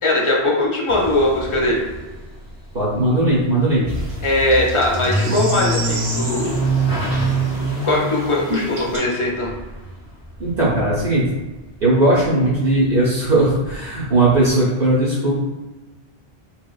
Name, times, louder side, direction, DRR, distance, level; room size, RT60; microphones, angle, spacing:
voice 1, 0.0-1.8 4.2-6.6 7.8-9.5, left 1 dB, 40° left, -2 dB, 0.5 m, -20 dB
sound 1, 0.9-11.9 12.1-14.5, right 2 dB, 20° left, 0.8 m, -26 dB
voice 2, 2.7-3.9 10.4-11.3 11.8-15.3, right 2 dB, 60° right, -6 dB, 0.8 m, -18 dB
sound 2, 3.9-9.0, right 2 dB, 90° right, 1.1 m, -33 dB
2.9 x 2.9 x 2.3 m, 1.2 s
omnidirectional pair, 1.1 m